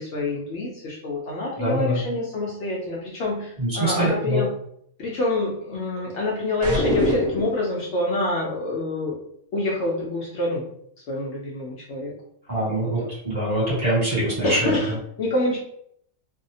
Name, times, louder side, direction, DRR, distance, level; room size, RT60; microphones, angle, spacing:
voice 1, 0.0-4.5 5.0-9.2 9.5-10.7 11.1-12.1 12.8-13.1 14.4-15.6, left 2 dB, 65° left, -3 dB, 0.8 m, -26 dB
voice 2, 1.6-2.0 3.6-4.4 12.5-14.8, right 1 dB, 30° right, -8 dB, 1.4 m, -24 dB
sound 1, 6.6-7.7, equal, 65° right, 1.0 m, -23 dB
2.6 x 2.0 x 2.6 m, 0.69 s
omnidirectional pair, 1.4 m